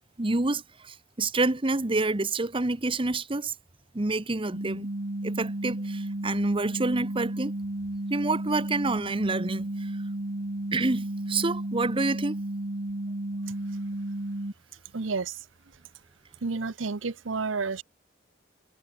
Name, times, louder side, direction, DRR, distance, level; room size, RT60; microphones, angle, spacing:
voice 1, 0.2-3.5 3.9-4.9 5.2-7.5 8.1-9.9 10.7-12.4, right 2 dB, 30° right, 1.0 m, -28 dB
sound 1, 4.5-14.5, right 1 dB, 55° right, 1.5 m, -33 dB
voice 2, 14.9-15.4 16.4-17.8, right 4 dB, 85° right, 0.8 m, -30 dB
head